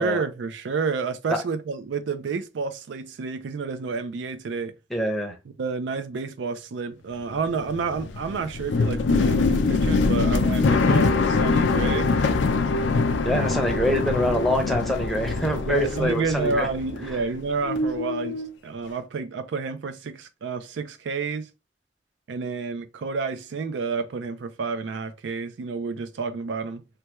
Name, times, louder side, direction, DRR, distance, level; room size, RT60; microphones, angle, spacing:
voice 1, 0.0-4.7 5.6-12.1 15.7-21.5 22.3-26.8, right 4 dB, 90° right, 0.4 m, -30 dB
voice 2, 4.9-5.3 13.2-16.7, equal, ahead, 0.6 m, -25 dB
sound 1, 7.3-17.4 17.6-18.5, left 3 dB, 85° left, 0.4 m, -23 dB
3.3 x 2.2 x 2.9 m
head